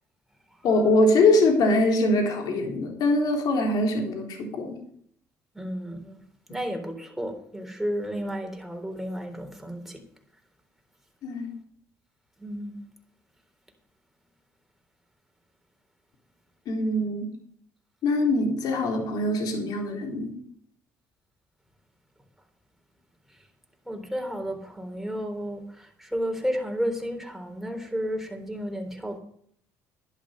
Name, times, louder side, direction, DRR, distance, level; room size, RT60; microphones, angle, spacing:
voice 1, 0.6-4.8 11.2-11.5 16.7-17.3 18.0-20.3, left 2 dB, 65° left, 2 dB, 3.8 m, -23 dB
voice 2, 5.5-6.2 6.5-10.0 12.4-12.8 23.9-29.2, equal, 5° right, 3 dB, 3.8 m, -32 dB
12.0 x 11.5 x 5.3 m, 0.65 s
supercardioid pair, 75°, 7 cm